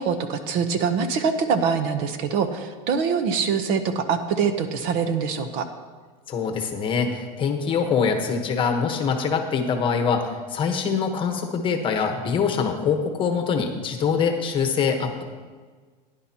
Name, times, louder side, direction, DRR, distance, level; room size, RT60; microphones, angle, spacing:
voice 1, 0.0-5.7, right 6 dB, 50° right, 8 dB, 0.9 m, -24 dB
voice 2, 6.3-15.2, left 6 dB, 25° left, 4 dB, 1.1 m, -24 dB
16.0 x 10.5 x 2.9 m, 1.5 s
supercardioid pair, 155°, 21 cm